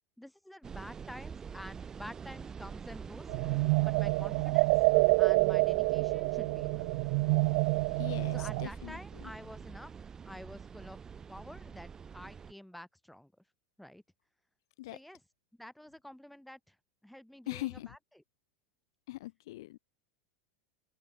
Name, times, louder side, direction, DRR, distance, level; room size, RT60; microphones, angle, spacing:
voice 1, 0.2-3.3 3.8-4.7 5.2-6.9 8.3-9.9 10.2-11.0 11.3-13.3 13.8-14.0 14.9-15.2 15.6-16.8 17.0-18.0, left 1 dB, ahead, 6.3 m, -49 dB
sound 1, 0.6-12.5, right 6 dB, 25° right, 5.9 m, -46 dB
sound 2, 3.3-8.7, right 29 dB, 65° right, 0.4 m, -27 dB
voice 2, 8.0-9.3 14.8-15.0 17.5-18.0 19.1-19.8, left 17 dB, 75° left, 4.3 m, -41 dB
open air
hypercardioid pair, 110°, 2 cm